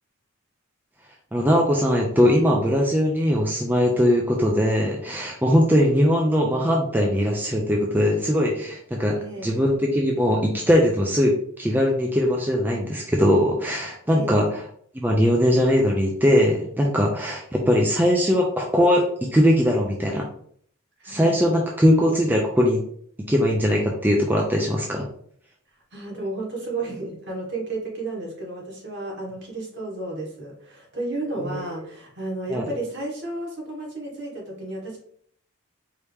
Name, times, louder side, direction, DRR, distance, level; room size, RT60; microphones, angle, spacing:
voice 1, 1.3-14.6 14.9-19.0 19.3-20.3 21.0-22.8 23.3-25.1 31.5-31.7 32.5-32.7, equal, 10° right, -1 dB, 0.4 m, -20 dB
voice 2, 9.2-9.6 14.1-14.4 21.0-21.3 25.9-35.0, right 2 dB, 50° right, -3 dB, 1.7 m, -32 dB
4.7 x 2.9 x 3.4 m, 0.62 s
head